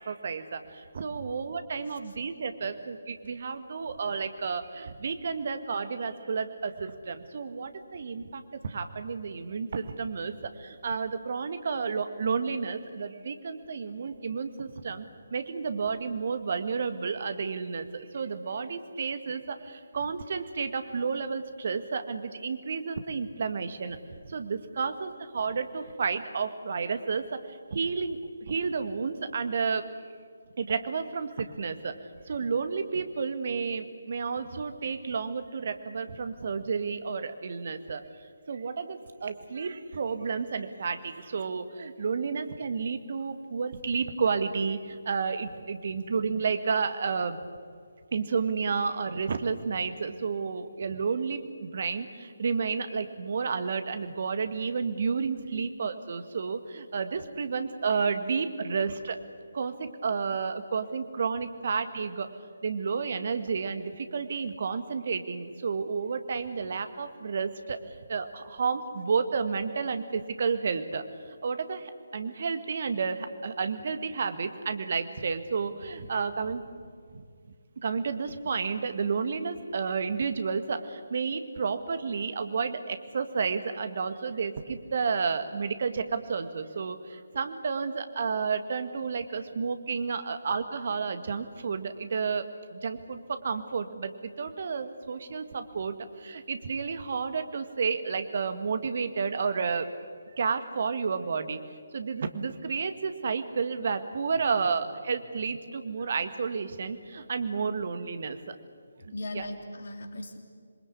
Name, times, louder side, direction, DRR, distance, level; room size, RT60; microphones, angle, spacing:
voice 1, 0.0-15.1 15.3-24.0 24.2-27.4 27.7-29.9 30.6-31.9 32.3-38.0 38.5-47.4 48.1-59.2 59.5-62.3 62.6-67.8 68.1-71.0 71.4-76.6 77.8-92.5 92.7-99.9 100.4-101.6 101.9-108.6 109.0-109.4, right 5 dB, 45° right, 9 dB, 1.8 m, -31 dB
voice 2, 1.9-2.2 2.6-2.7 24.8-25.0 55.5-55.7 74.3-74.4 104.3-104.4 107.6-107.7 108.9-110.4, left 1 dB, 55° left, 4 dB, 3.2 m, -40 dB
27.5 x 22.0 x 8.4 m, 2.1 s
figure-of-eight pair, 150°, 0 cm